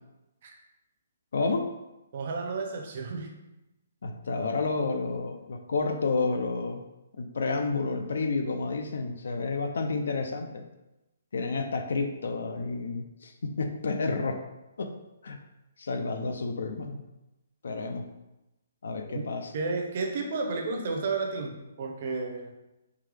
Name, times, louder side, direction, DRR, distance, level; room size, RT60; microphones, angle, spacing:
voice 1, 1.3-1.7 4.0-6.8 7.2-10.6 11.3-14.4 14.8-14.9 15.2-15.4 15.8-17.0 17.6-18.0 18.8-19.5, left 3 dB, 70° left, 5 dB, 0.5 m, -30 dB
voice 2, 2.1-3.3 19.1-19.3 19.5-22.6, right 3 dB, 35° right, 2 dB, 0.6 m, -32 dB
3.7 x 3.2 x 3.3 m, 0.97 s
hypercardioid pair, 175°, 0 cm